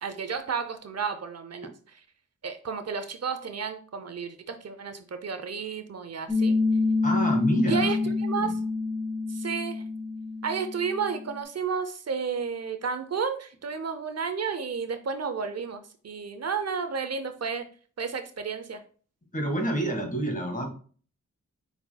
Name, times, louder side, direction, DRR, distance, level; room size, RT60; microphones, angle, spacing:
voice 1, 0.0-1.7 2.4-6.5 7.7-8.5 9.3-9.8 10.4-17.7 18.0-18.8, right 6 dB, 60° right, 9 dB, 0.6 m, -32 dB
Piano, 6.3-11.4, left 3 dB, 5° left, 1.0 m, -27 dB
voice 2, 7.0-7.9 8.4-8.5 19.3-20.7, equal, 30° left, 3 dB, 1.6 m, -28 dB
5.4 x 4.3 x 2.2 m, 0.41 s
cardioid pair, 65°, 29 cm